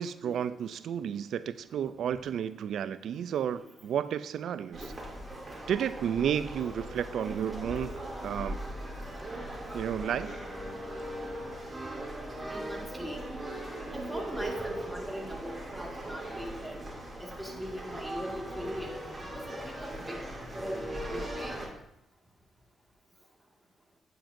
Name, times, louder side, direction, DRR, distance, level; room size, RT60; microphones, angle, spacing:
voice 1, 0.0-4.8 5.7-7.9 8.2-8.6 9.7-10.3, right 9 dB, 75° right, 14 dB, 0.4 m, -32 dB
sound 1, 4.7-21.7, right 1 dB, 20° right, 2.5 m, -39 dB
voice 2, 9.5-9.9 12.5-13.2 13.9-16.8 17.2-20.2 20.5-21.6, equal, 5° right, -1 dB, 1.8 m, -41 dB
8.7 x 7.7 x 2.6 m, 0.81 s
cardioid pair, 70°, 0 cm